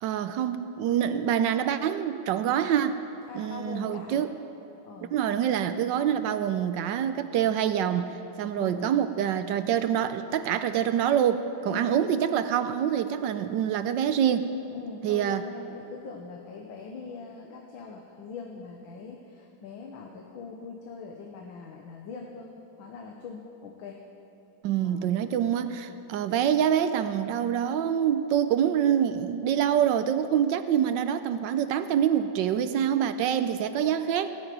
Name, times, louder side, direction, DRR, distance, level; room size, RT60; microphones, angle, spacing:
voice 1, 0.0-3.0 3.3-4.3 5.1-8.1 8.4-14.5 15.0-15.4 24.6-34.4, right 9 dB, 75° right, 11 dB, 1.1 m, -26 dB
voice 2, 3.3-4.3 4.8-5.1 8.4-9.0 11.7-11.9 14.7-22.5 22.8-24.0 24.8-26.0, left 5 dB, 70° left, 0 dB, 1.8 m, -42 dB
18.0 x 7.2 x 9.2 m, 2.8 s
omnidirectional pair, 2.3 m